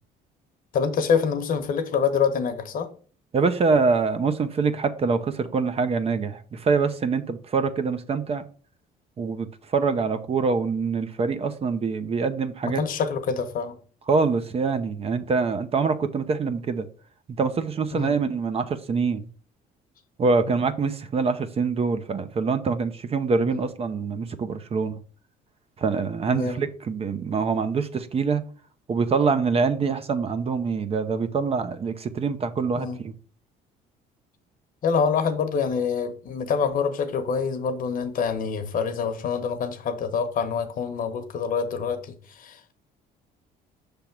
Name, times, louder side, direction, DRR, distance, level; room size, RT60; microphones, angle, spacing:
voice 1, 0.7-2.9 12.6-13.8 17.9-18.1 23.5-23.6 26.3-26.6 32.8-33.0 34.8-42.8, left 6 dB, 55° left, 1.0 m, -26 dB
voice 2, 3.3-8.4 9.2-12.8 14.1-16.9 17.4-19.3 20.2-25.0 25.8-28.4 28.9-33.1, right 4 dB, 35° right, 0.7 m, -25 dB
5.9 x 3.4 x 5.8 m
cardioid pair, 110°, 17 cm